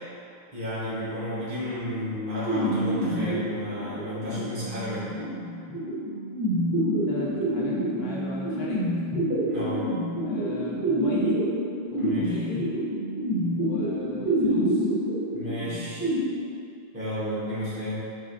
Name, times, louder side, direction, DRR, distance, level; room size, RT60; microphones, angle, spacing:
voice 1, 0.5-5.1 9.4-10.0 12.0-12.3 15.3-16.1 16.9-18.0, equal, 55° right, -11 dB, 1.3 m, -32 dB
sound 1, 2.5-16.2, right 1 dB, 20° right, 0.9 m, -27 dB
voice 2, 7.1-9.0 10.2-11.4 11.9-12.7 13.6-14.9, left 3 dB, 80° left, -5 dB, 1.0 m, -37 dB
4.4 x 3.0 x 2.5 m, 2.4 s
omnidirectional pair, 1.0 m